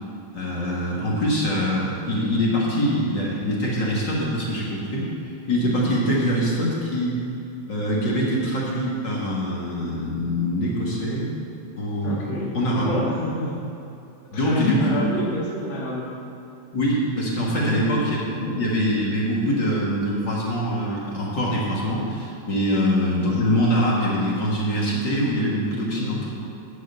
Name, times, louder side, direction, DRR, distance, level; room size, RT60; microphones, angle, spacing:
voice 1, 0.3-7.1 7.7-11.3 11.8-12.2 12.5-12.8 14.3-15.3 16.7-26.3, equal, 45° left, -5 dB, 1.6 m, -24 dB
voice 2, 12.0-13.6 14.3-16.1 17.6-17.7 18.3-18.6 25.8-26.1, left 1 dB, 60° left, -5 dB, 0.7 m, -28 dB
9.4 x 6.6 x 8.0 m, 2.8 s
omnidirectional pair, 4.4 m